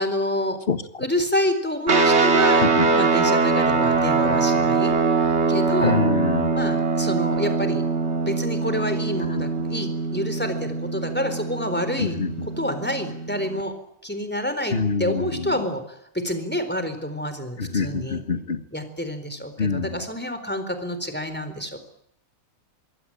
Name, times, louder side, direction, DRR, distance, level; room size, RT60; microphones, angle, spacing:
voice 1, 0.0-0.6 1.0-2.6 2.9-5.0 5.5-6.0 6.5-7.8 8.2-12.2 12.6-13.7 14.0-16.0 16.2-18.2 18.7-21.8, equal, 5° left, 9 dB, 4.0 m, -28 dB
sound 1, 1.9-13.6, right 4 dB, 50° right, 2.2 m, -22 dB
voice 2, 5.8-6.7 9.3-9.7 12.0-12.5 14.7-15.6 17.6-18.6 19.6-20.0, left 4 dB, 40° left, 10 dB, 1.7 m, -26 dB
25.0 x 22.0 x 8.9 m, 0.75 s
omnidirectional pair, 1.6 m